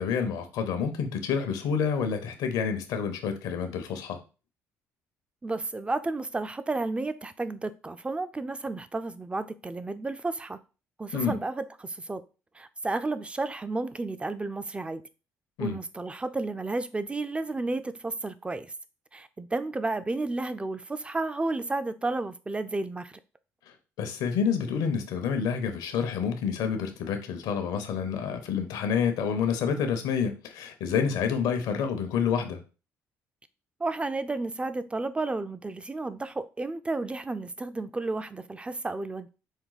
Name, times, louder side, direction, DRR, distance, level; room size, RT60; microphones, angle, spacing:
voice 1, 0.0-4.2 11.1-11.4 15.6-15.8 24.0-32.6, left 6 dB, 75° left, 0.8 m, -28 dB
voice 2, 5.4-10.6 11.0-12.2 12.5-15.0 15.6-18.7 19.1-23.2 33.8-39.3, right 2 dB, 15° right, 0.5 m, -32 dB
5.2 x 2.3 x 4.0 m
supercardioid pair, 65°, 7 cm